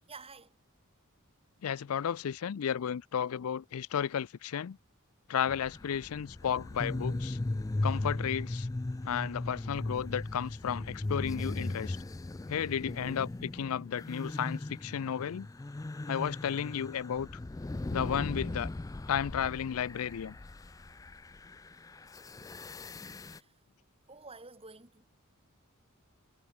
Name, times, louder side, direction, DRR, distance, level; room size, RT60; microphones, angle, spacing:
voice 1, 0.1-0.6 23.2-23.6 24.1-25.1, right 4 dB, 25° right, 3.7 m, -50 dB
voice 2, 1.6-4.8 5.3-7.4 7.8-8.7 9.0-12.0 12.5-15.5 16.1-17.3 17.9-18.7 19.1-20.4, left 8 dB, 85° left, 0.4 m, -33 dB
sound 1, 5.5-23.4, left 2 dB, 15° left, 0.3 m, -38 dB
head